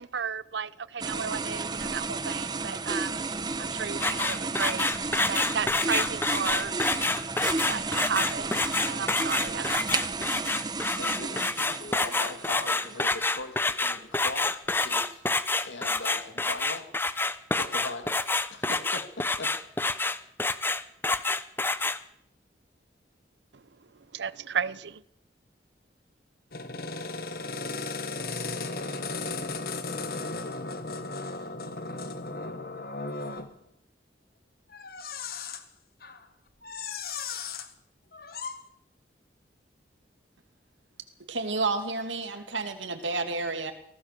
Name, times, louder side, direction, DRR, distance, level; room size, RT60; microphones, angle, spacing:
voice 1, 0.0-6.7 7.6-10.2 23.5-23.6 23.9-25.0, right 6 dB, 70° right, 0.7 m, -34 dB
sound 1, 1.0-13.3, right 3 dB, 20° right, 1.1 m, -33 dB
sound 2, 4.0-22.0, left 3 dB, 10° left, 0.7 m, -28 dB
voice 2, 11.0-16.9 17.6-18.2 18.5-19.5, left 2 dB, 85° left, 2.5 m, -40 dB
sound 3, 26.5-33.5 34.7-35.6 36.0-36.2 36.6-37.7 38.1-38.6, left 3 dB, 55° left, 1.7 m, -35 dB
voice 3, 41.3-43.7, right 3 dB, 90° right, 2.6 m, -30 dB
24.0 x 17.0 x 6.9 m
head